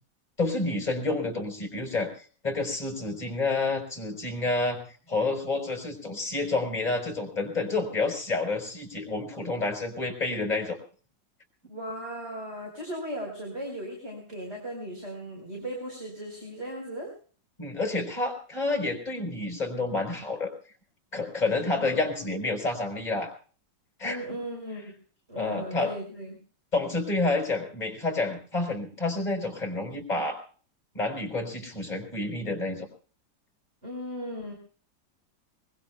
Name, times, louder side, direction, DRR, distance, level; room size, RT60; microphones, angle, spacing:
voice 1, 0.4-2.1 2.4-4.8 5.1-10.8 17.6-20.5 21.1-23.3 24.0-24.2 25.3-25.9 26.7-30.4 30.9-32.9, left 3 dB, 20° left, 3 dB, 4.6 m, -29 dB
voice 2, 11.7-17.1 21.8-22.3 24.0-25.0 25.3-26.3 33.8-34.5, equal, 35° right, 0 dB, 5.0 m, -37 dB
24.0 x 22.0 x 2.4 m, 0.41 s
omnidirectional pair, 2.0 m